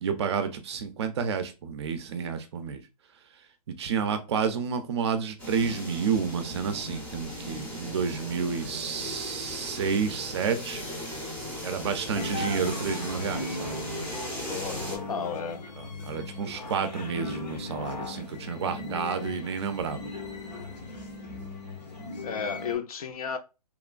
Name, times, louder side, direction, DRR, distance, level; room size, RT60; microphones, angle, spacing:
voice 1, 0.0-2.8 3.7-10.9 11.6-13.8 15.8-20.1 21.3-21.5, right 6 dB, 40° right, 0.4 m, -30 dB
sound 1, 5.4-15.0, equal, 10° left, 0.6 m, -37 dB
sound 2, 12.1-22.7, left 2 dB, 85° left, 1.1 m, -38 dB
voice 2, 14.5-15.6 22.2-23.4, left 6 dB, 60° left, 0.5 m, -33 dB
3.0 x 2.1 x 2.4 m
hypercardioid pair, 155°, 21 cm